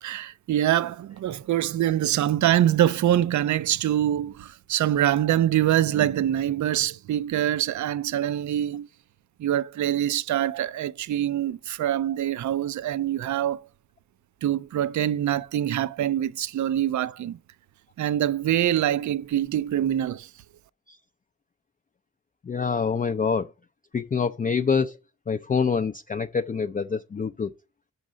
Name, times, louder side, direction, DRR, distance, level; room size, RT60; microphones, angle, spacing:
voice 1, 0.0-8.9 9.4-13.6 14.4-17.4 18.0-20.3, right 11 dB, 60° right, 0.4 m, -24 dB
voice 2, 22.5-23.5 23.9-25.0 25.3-27.5, left 5 dB, 25° left, 0.4 m, -25 dB
6.3 x 5.3 x 5.0 m
supercardioid pair, 40°, 33 cm